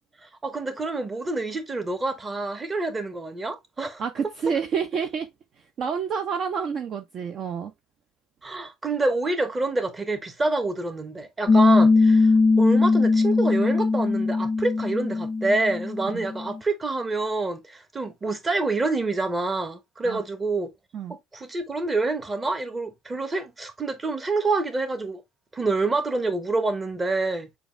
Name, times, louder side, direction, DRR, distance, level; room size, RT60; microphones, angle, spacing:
voice 1, 0.2-4.0 8.4-12.3 12.6-20.7 21.3-25.2 25.5-27.5, right 3 dB, 20° right, 1.0 m, -27 dB
voice 2, 4.0-5.3 5.8-7.7 16.1-16.3 20.0-20.2 20.9-21.2, right 6 dB, 45° right, 0.5 m, -28 dB
Piano, 11.5-16.6, left 3 dB, 30° left, 0.3 m, -20 dB
6.9 x 2.4 x 3.2 m
figure-of-eight pair, 60°, 0 cm